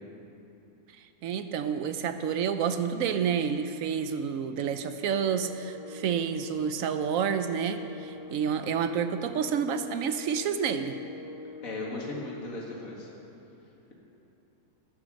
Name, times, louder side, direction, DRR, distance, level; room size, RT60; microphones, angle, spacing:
voice 1, 1.2-11.0, right 7 dB, 70° right, 10 dB, 0.9 m, -29 dB
sound 1, 5.0-12.1, left 2 dB, 15° right, 1.0 m, -44 dB
voice 2, 11.6-13.1, left 2 dB, 60° left, -3 dB, 2.2 m, -36 dB
11.0 x 10.0 x 6.3 m, 2.8 s
omnidirectional pair, 1.7 m